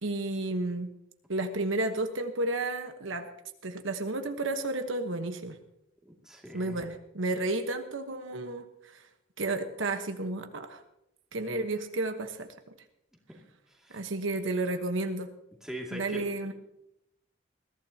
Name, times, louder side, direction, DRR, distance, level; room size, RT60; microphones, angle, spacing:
voice 1, 0.0-0.9 1.3-3.3 3.6-5.6 6.5-9.0 9.4-10.8 11.3-12.5 13.9-15.3 15.9-16.5, right 2 dB, 70° right, 6 dB, 1.2 m, -32 dB
voice 2, 6.0-6.8 13.3-13.4 13.7-14.1 15.6-16.5, right 1 dB, 5° right, -1 dB, 2.3 m, -42 dB
21.0 x 15.0 x 2.9 m, 0.82 s
head